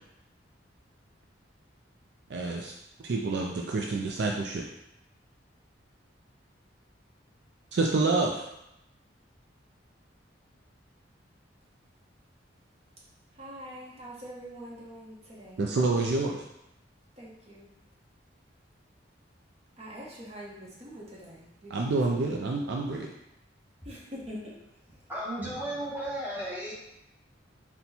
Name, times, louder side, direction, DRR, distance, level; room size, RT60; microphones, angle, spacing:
voice 1, 2.3-2.7 3.0-4.6 7.7-8.5 15.6-16.4 21.7-23.1, right 3 dB, 60° right, 0 dB, 0.4 m, -28 dB
voice 2, 13.3-15.8 17.2-17.7 19.8-22.4 23.8-24.5 24.9-25.1, equal, 35° right, -5 dB, 0.9 m, -44 dB
voice 3, 25.1-26.7, right 1 dB, 10° right, -7 dB, 1.0 m, -34 dB
4.3 x 2.2 x 4.1 m, 0.84 s
head